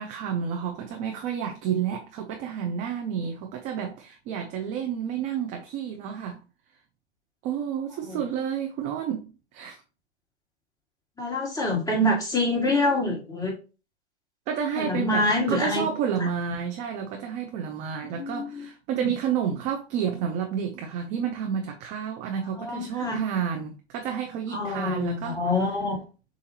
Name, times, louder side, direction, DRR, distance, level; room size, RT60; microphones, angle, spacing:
voice 1, 0.0-6.4 7.4-9.8 14.5-25.4, right 8 dB, 20° right, 0.4 m, -30 dB
voice 2, 11.2-13.5 14.8-15.9 16.5-16.6 18.0-18.5 19.0-19.1 22.6-23.2 24.5-26.0, left 2 dB, 10° left, 1.7 m, -26 dB
6.6 x 2.5 x 2.8 m
hypercardioid pair, 120°, 35 cm